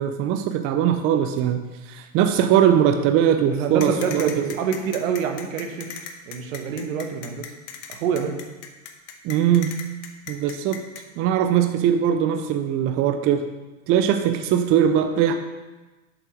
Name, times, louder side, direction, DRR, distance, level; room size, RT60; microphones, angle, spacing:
voice 1, 0.0-4.5 9.2-9.8 10.3-10.8 11.2-13.4 13.9-15.3, right 9 dB, 35° right, 7 dB, 0.5 m, -21 dB
voice 2, 3.5-5.9 6.3-7.5 7.9-8.4, right 7 dB, 70° right, 5 dB, 1.2 m, -26 dB
sound 1, 3.8-11.0, left 8 dB, 55° left, 1.0 m, -37 dB
7.2 x 5.4 x 5.0 m, 1.2 s
hypercardioid pair, 105°, 42 cm